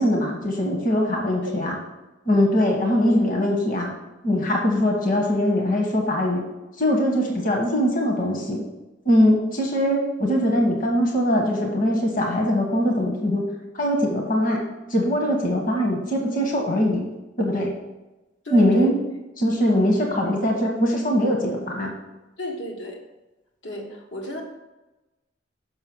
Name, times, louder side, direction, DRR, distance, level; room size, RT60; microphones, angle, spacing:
voice 1, 0.0-1.8 2.3-3.9 4.2-6.4 6.8-8.6 9.0-13.5 13.7-14.6 14.9-17.0 17.4-17.7 18.5-18.9 19.4-21.9, equal, 50° left, 1 dB, 1.2 m, -21 dB
voice 2, 18.4-18.9 19.7-19.9 22.4-23.0 23.6-24.4, equal, 85° left, 0 dB, 1.6 m, -33 dB
6.7 x 5.3 x 6.1 m, 1.0 s
head